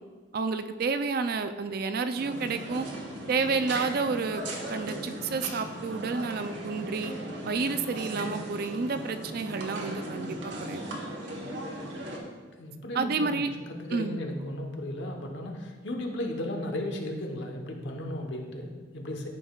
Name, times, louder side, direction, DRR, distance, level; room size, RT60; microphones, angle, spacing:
voice 1, 0.3-2.9 3.3-4.4 4.7-7.1 7.4-10.8 12.9-13.5 13.9-14.2, right 4 dB, 55° right, 9 dB, 0.4 m, -30 dB
sound 1, 2.1-12.2, right 1 dB, 85° right, 1.3 m, -38 dB
voice 2, 12.6-13.4 13.7-19.3, left 1 dB, 90° left, 2 dB, 1.1 m, -35 dB
13.0 x 5.3 x 2.4 m, 1.5 s
head